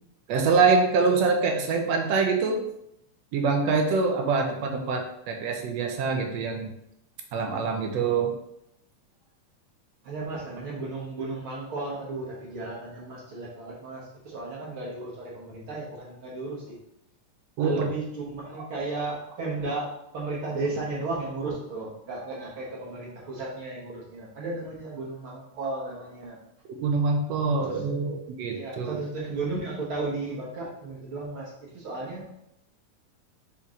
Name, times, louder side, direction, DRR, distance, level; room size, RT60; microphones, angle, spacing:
voice 1, 0.3-2.6 3.3-6.7 7.3-8.3 17.6-17.9 18.6-18.7 26.7-29.0, right 4 dB, 70° right, 3 dB, 1.8 m, -25 dB
voice 2, 10.0-16.8 17.6-26.4 27.6-27.8 28.4-32.3, right 3 dB, 55° right, -4 dB, 1.7 m, -34 dB
5.9 x 4.4 x 3.7 m, 0.77 s
omnidirectional pair, 3.5 m